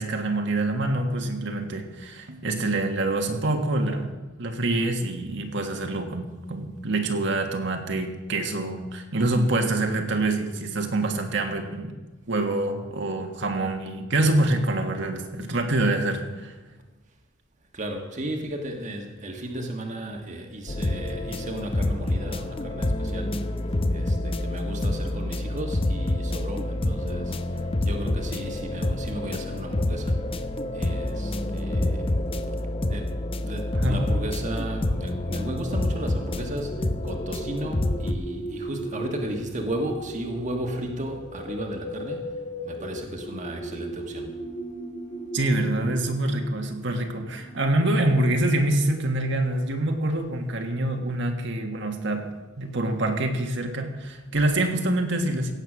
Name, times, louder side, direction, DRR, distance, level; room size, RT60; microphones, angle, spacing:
voice 1, 0.0-11.9 12.3-16.5 33.7-34.0 45.3-52.2 52.6-55.5, right 2 dB, 65° right, 4 dB, 1.6 m, -26 dB
voice 2, 17.7-30.5 30.7-32.2 32.9-44.3, right 1 dB, 40° right, 3 dB, 1.5 m, -35 dB
sound 1, 20.7-38.1, left 1 dB, 30° left, 0.7 m, -27 dB
sound 2, 36.6-47.7, right 1 dB, 75° left, 4.4 m, -37 dB
16.5 x 8.1 x 6.2 m, 1.2 s
head